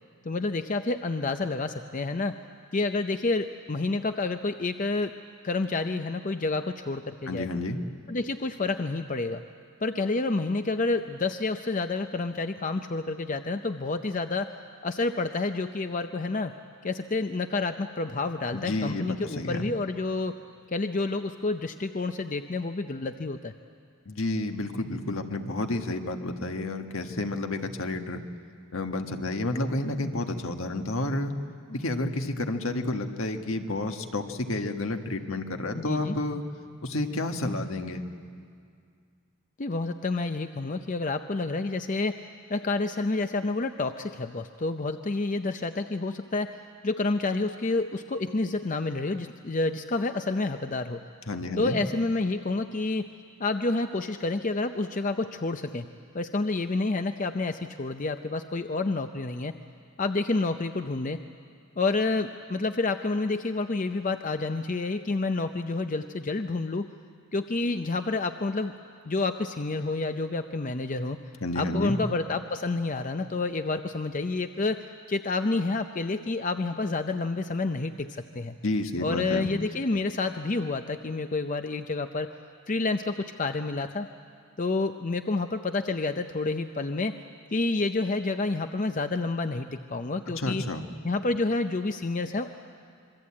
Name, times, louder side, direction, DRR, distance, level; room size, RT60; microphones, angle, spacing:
voice 1, 0.2-2.4 2.7-5.1 5.4-7.5 8.1-9.4 9.8-14.5 14.8-16.5 16.8-20.4 20.7-23.5 31.7-31.8 35.7-36.1 39.6-51.0 51.6-53.1 53.4-55.8 56.1-59.5 60.0-61.2 61.8-66.9 67.3-68.7 69.1-71.2 71.5-78.5 79.0-82.3 82.7-84.1 84.6-87.1 87.5-90.6 91.0-92.5, left 3 dB, 35° left, 8 dB, 0.6 m, -29 dB
voice 2, 7.3-7.8 18.5-19.7 24.0-28.2 28.7-31.3 31.7-36.4 36.8-38.0 51.3-51.8 71.4-72.0 78.6-79.5 90.4-90.8, left 2 dB, 70° left, 5 dB, 1.5 m, -30 dB
26.5 x 22.5 x 8.6 m, 2.2 s
head